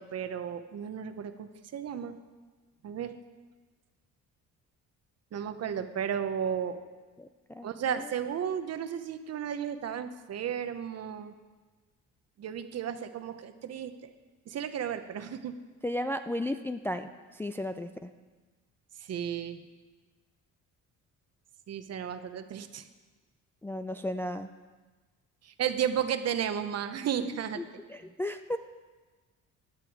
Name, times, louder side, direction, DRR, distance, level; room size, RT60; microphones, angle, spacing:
voice 1, 0.0-2.2 2.8-3.1 5.3-6.8 7.6-11.3 12.4-13.9 14.5-15.5 19.0-19.6 21.7-22.8 25.4-27.6, right 8 dB, 50° right, 10 dB, 0.9 m, -33 dB
voice 2, 7.2-8.0 15.8-18.1 23.6-24.5 27.3-28.6, left 1 dB, 5° left, 8 dB, 0.3 m, -35 dB
16.0 x 9.9 x 4.7 m, 1.3 s
cardioid pair, 120°, 32 cm